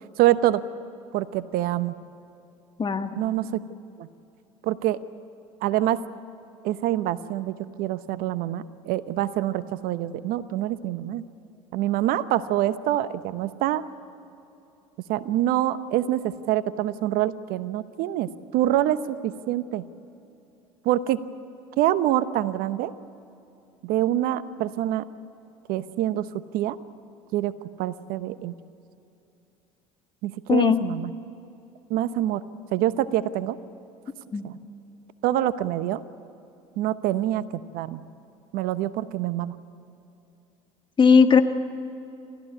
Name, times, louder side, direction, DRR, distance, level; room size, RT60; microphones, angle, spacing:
voice 1, 0.2-0.6 1.1-2.0 3.2-3.6 4.0-4.1 4.6-5.0 5.6-6.0 6.6-11.2 11.7-13.8 15.1-19.9 20.8-21.2 21.8-22.9 23.8-25.0 25.7-26.8 27.3-28.6 30.2-31.1 31.9-32.4 32.7-33.6 34.4-34.6 35.2-36.0 36.8-38.0 38.5-39.6, right 13 dB, 60° right, 14 dB, 0.9 m, -25 dB
voice 2, 2.8-3.2 30.5-30.8 34.3-34.4 41.0-41.4, left 5 dB, 30° left, 8 dB, 1.6 m, -17 dB
28.0 x 14.5 x 9.8 m, 2.8 s
hypercardioid pair, 70°, 17 cm